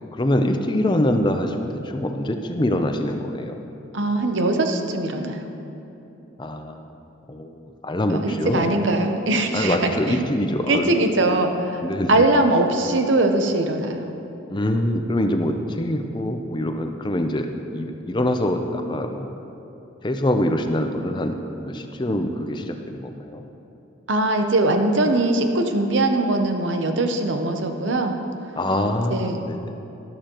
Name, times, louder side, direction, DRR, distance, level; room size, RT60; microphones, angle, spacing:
voice 1, 0.2-3.6 6.4-6.8 7.3-7.6 7.8-8.7 9.5-10.9 11.8-12.1 14.5-19.3 20.0-21.3 21.6-23.4 28.6-29.7, left 1 dB, 25° left, 5 dB, 0.5 m, -24 dB
voice 2, 3.9-5.5 8.1-10.2 10.7-11.8 12.1-14.1 24.1-28.2 29.1-29.4, right 2 dB, 65° right, 5 dB, 0.8 m, -21 dB
12.5 x 11.5 x 3.0 m, 2.9 s
head